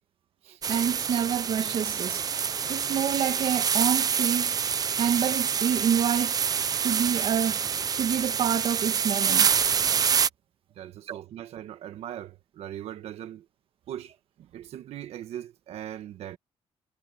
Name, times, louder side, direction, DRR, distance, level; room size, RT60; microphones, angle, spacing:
sound 1, 0.6-10.3, right 7 dB, 35° right, 0.7 m, -26 dB
voice 1, 0.7-2.2 2.7-4.5 5.0-6.4 6.8-7.6 8.0-9.5 11.1-11.2, right 8 dB, 60° right, 1.8 m, -27 dB
voice 2, 10.7-13.5 13.9-16.4, right 11 dB, 85° right, 1.3 m, -40 dB
cardioid pair, 145°, 10 cm